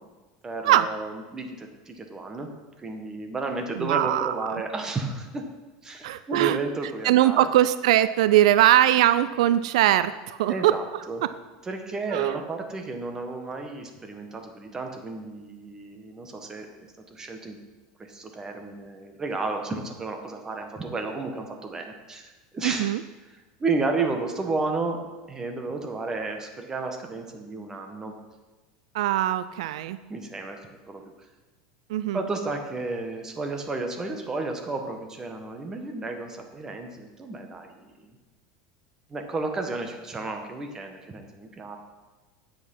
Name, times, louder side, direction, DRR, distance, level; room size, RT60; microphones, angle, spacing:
voice 1, 0.4-2.5 2.8-5.4 5.8-7.5 10.5-11.2 11.6-16.7 17.1-17.6 18.0-22.9 23.6-25.0 25.3-28.1 30.1-31.0 32.1-38.1 39.1-41.8, right 3 dB, 15° right, 4 dB, 1.3 m, -32 dB
voice 2, 3.8-4.6 6.0-6.6 7.0-10.7 12.1-12.4 22.6-23.0 28.9-30.0 31.9-32.2, right 13 dB, 85° right, 14 dB, 0.4 m, -21 dB
9.5 x 8.0 x 5.4 m, 1.2 s
supercardioid pair, 140°, 3 cm